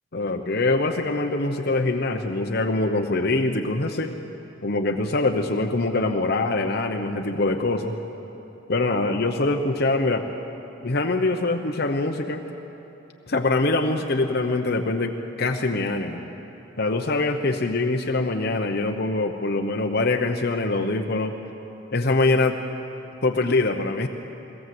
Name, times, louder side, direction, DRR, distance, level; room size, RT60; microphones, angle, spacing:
voice 1, 0.1-4.2 4.6-8.0 8.7-10.3 10.8-12.4 13.3-16.2 16.8-21.4 21.9-22.6 23.2-24.1, left 2 dB, 50° left, 4 dB, 0.9 m, -24 dB
22.5 x 17.5 x 7.8 m, 3.0 s
head